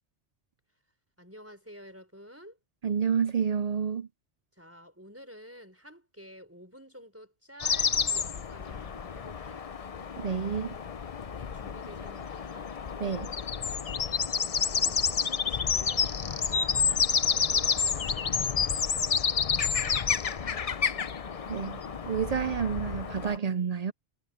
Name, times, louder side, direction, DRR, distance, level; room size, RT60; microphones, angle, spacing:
voice 1, 1.2-2.6 4.5-9.7 11.2-12.8 13.9-19.0 19.9-20.8, equal, 10° right, 4.5 m, -51 dB
voice 2, 2.8-4.1 10.2-10.8 13.0-13.3 21.5-23.9, right 7 dB, 55° right, 0.4 m, -29 dB
sound 1, 7.6-23.4, left 6 dB, 40° left, 0.6 m, -29 dB
omnidirectional pair, 1.2 m